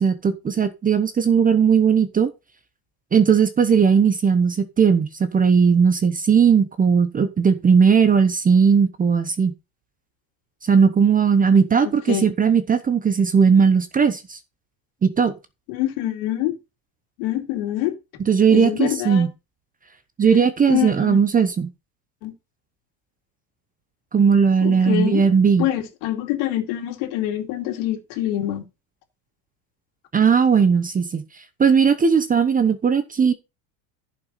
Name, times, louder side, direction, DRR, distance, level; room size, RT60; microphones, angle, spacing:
voice 1, 0.0-2.3 3.1-9.5 10.7-14.4 15.0-15.3 18.3-19.3 20.2-21.7 24.1-25.7 30.1-31.2 31.6-33.3, right 6 dB, 15° right, 0.8 m, -17 dB
voice 2, 15.7-16.6 17.2-18.0 18.5-19.3 20.7-21.2 22.2-22.3 24.6-25.2 25.6-28.6, left 13 dB, 65° left, 2.7 m, -25 dB
10.5 x 6.1 x 4.1 m
supercardioid pair, 125°, 48 cm